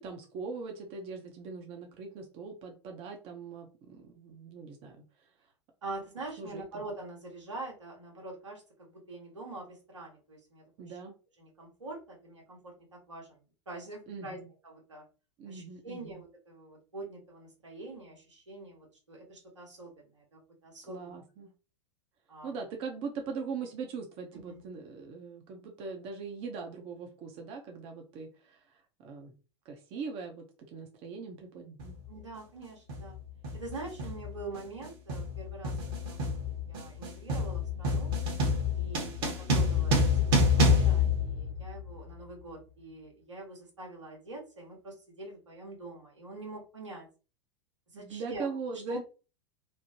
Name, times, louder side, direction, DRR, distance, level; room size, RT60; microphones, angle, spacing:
voice 1, 0.0-5.0 6.4-6.7 10.8-11.1 14.1-14.5 15.4-16.2 20.9-21.5 22.4-28.6 29.0-29.3 29.7-31.9 47.9-49.0, right 4 dB, 40° right, 3 dB, 0.6 m, -41 dB
voice 2, 5.8-11.0 11.4-14.4 14.6-15.0 15.5-21.1 22.3-22.5 24.5-24.6 32.1-33.2 33.5-35.7 36.0-38.1 38.7-47.1 47.9-48.5 48.9-49.0, right 2 dB, 85° right, -1 dB, 1.3 m, -45 dB
sound 1, 31.8-32.0 32.9-33.2 33.4-42.0, left 3 dB, 55° right, 1.1 m, -28 dB
3.1 x 2.0 x 2.8 m, 0.33 s
hypercardioid pair, 95°, 15 cm